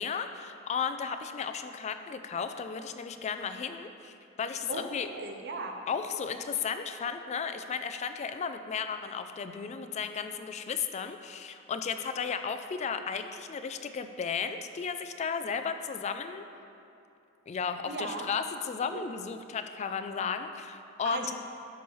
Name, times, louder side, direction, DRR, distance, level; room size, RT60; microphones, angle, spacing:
voice 1, 0.0-5.1 5.9-16.5 17.5-21.3, left 6 dB, 35° left, 9 dB, 0.3 m, -34 dB
voice 2, 4.7-5.7 17.9-18.3 18.9-19.0 21.0-21.3, right 3 dB, 55° right, 3 dB, 0.8 m, -37 dB
10.5 x 7.0 x 3.1 m, 2.7 s
head